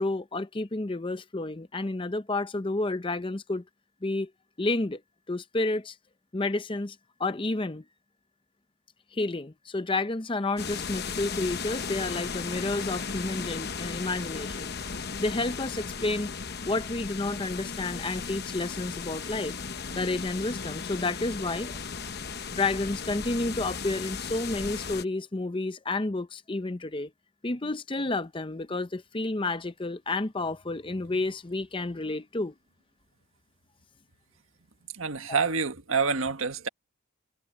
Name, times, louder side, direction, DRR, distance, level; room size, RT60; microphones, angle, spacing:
voice 1, 0.0-3.6 4.0-4.3 4.6-5.0 5.3-6.0 6.3-7.8 9.1-16.3 16.6-19.6 20.0-21.8 22.5-27.1 27.4-32.5 35.3-35.4, left 2 dB, 25° left, 0.6 m, -30 dB
sound 1, 10.6-25.0, left 5 dB, 50° left, 1.0 m, -36 dB
voice 2, 34.9-36.7, right 5 dB, 75° right, 1.7 m, -27 dB
head